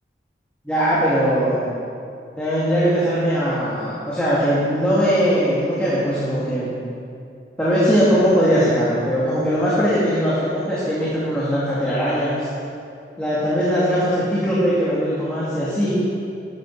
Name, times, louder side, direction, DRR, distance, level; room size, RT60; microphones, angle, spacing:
voice 1, 0.6-1.7 2.4-6.7 7.6-12.5 13.2-16.0, equal, 5° left, -10 dB, 2.2 m, -20 dB
13.5 x 9.9 x 4.8 m, 2.5 s
head